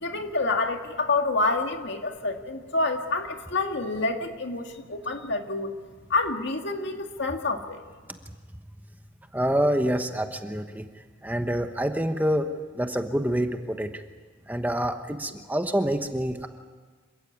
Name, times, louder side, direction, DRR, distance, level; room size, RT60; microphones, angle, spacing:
voice 1, 0.0-5.7 6.1-7.8, left 3 dB, 60° left, 5 dB, 2.0 m, -28 dB
voice 2, 9.3-10.8 11.2-12.5 12.7-14.0 14.5-16.5, equal, 10° right, 6 dB, 1.0 m, -26 dB
27.0 x 16.0 x 9.6 m, 1.5 s
head